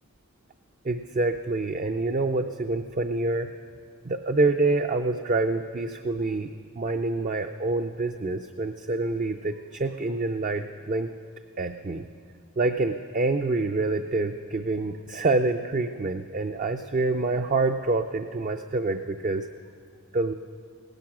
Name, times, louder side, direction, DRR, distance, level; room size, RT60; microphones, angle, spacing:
voice 1, 0.8-3.5 4.0-6.5 6.8-11.1 11.6-12.1 12.6-19.5 20.1-20.3, right 3 dB, 35° right, 6 dB, 0.4 m, -26 dB
17.0 x 12.0 x 6.0 m, 2.1 s
head